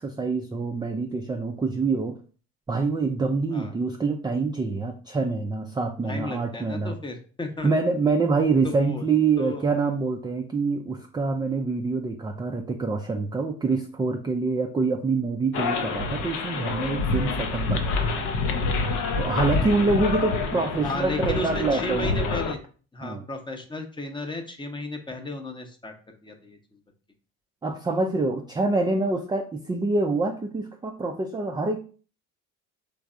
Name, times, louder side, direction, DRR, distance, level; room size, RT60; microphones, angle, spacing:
voice 1, 0.0-2.2 2.7-7.0 7.6-18.3 19.2-22.4 23.0-23.2 27.6-31.8, right 3 dB, 10° right, 3 dB, 0.3 m, -26 dB
voice 2, 6.0-7.7 8.6-9.1 9.4-9.6 20.8-22.6 22.9-26.6, left 2 dB, 15° left, 5 dB, 0.7 m, -34 dB
sound 1, 15.5-22.5, left 4 dB, 70° left, 0.6 m, -27 dB
3.4 x 3.1 x 2.4 m, 0.39 s
hypercardioid pair, 60°, 38 cm